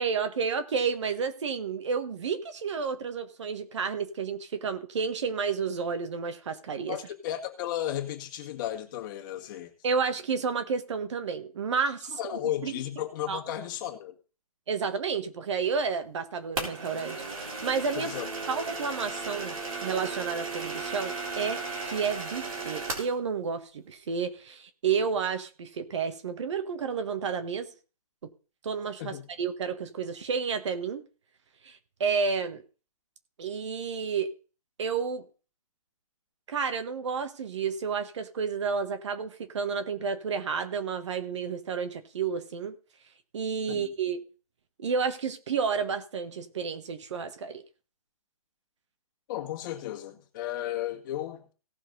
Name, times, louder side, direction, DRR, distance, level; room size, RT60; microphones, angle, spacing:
voice 1, 0.0-7.0 9.8-12.2 12.6-12.8 13.3-13.4 14.7-18.1 18.5-19.6 19.8-27.7 28.2-28.3 28.6-31.0 31.6-32.6 33.4-34.3 34.8-35.2 36.5-42.7 43.3-44.2 44.8-47.6, right 5 dB, 50° right, 9 dB, 1.4 m, -31 dB
voice 2, 6.9-9.7 12.2-14.1 18.0-18.3 29.0-29.3 43.7-43.9 49.3-51.5, left 12 dB, 35° left, 2 dB, 2.0 m, -34 dB
sound 1, 16.6-23.2, right 3 dB, 70° right, 3.9 m, -35 dB
17.5 x 6.1 x 4.0 m, 0.35 s
figure-of-eight pair, 130°, 19 cm